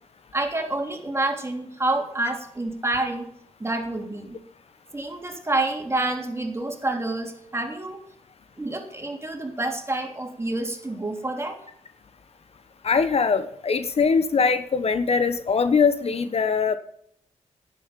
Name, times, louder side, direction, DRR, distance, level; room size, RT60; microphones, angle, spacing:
voice 1, 0.3-3.3 3.6-4.4 4.9-8.0 8.6-11.6, right 2 dB, 20° right, 3 dB, 3.2 m, -28 dB
voice 2, 12.8-16.8, left 5 dB, 55° left, 11 dB, 1.0 m, -22 dB
11.0 x 9.1 x 5.2 m, 0.69 s
supercardioid pair, 50°, 12 cm